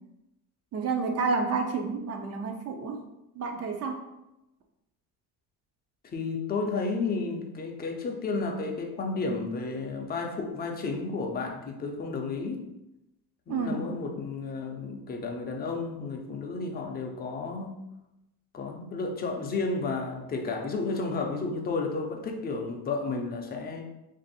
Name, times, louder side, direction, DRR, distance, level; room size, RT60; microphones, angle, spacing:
voice 1, 0.7-3.0 3.3-4.0 13.5-13.9, right 4 dB, 40° right, 4 dB, 0.5 m, -30 dB
voice 2, 6.1-12.7 13.5-17.8 18.5-23.8, left 3 dB, 25° left, 1 dB, 0.5 m, -32 dB
2.6 x 2.5 x 4.0 m, 0.92 s
cardioid pair, 125°, 38 cm